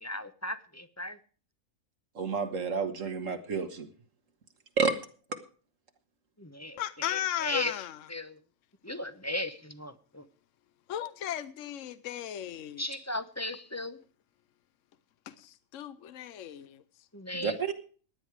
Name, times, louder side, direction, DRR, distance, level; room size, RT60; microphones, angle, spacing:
voice 1, 0.0-1.2 6.4-7.8 8.1-8.4 8.8-10.3 12.8-14.0 17.1-17.6, left 2 dB, 15° left, 0.8 m, -36 dB
voice 2, 2.2-3.9 4.8-4.9 17.3-17.7, right 5 dB, 70° right, 1.9 m, -30 dB
voice 3, 6.8-8.0 10.9-12.8 15.3-16.8, left 11 dB, 70° left, 1.1 m, -36 dB
16.5 x 10.0 x 4.9 m
omnidirectional pair, 1.4 m